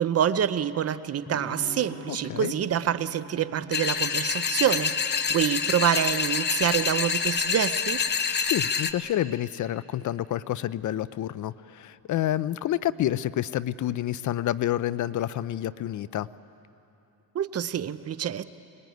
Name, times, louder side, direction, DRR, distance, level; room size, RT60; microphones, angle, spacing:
voice 1, 0.0-8.0 17.3-18.4, right 9 dB, 40° right, 13 dB, 0.7 m, -26 dB
Electric guitar / Strum, 1.3-7.0, left 2 dB, 5° left, 5.6 m, -46 dB
voice 2, 2.1-2.5 8.4-16.3, left 12 dB, 55° left, 16 dB, 0.6 m, -29 dB
sound 1, 3.7-8.9, left 6 dB, 30° left, 0.8 m, -27 dB
23.5 x 21.0 x 9.4 m, 2.8 s
cardioid pair, 130°, 37 cm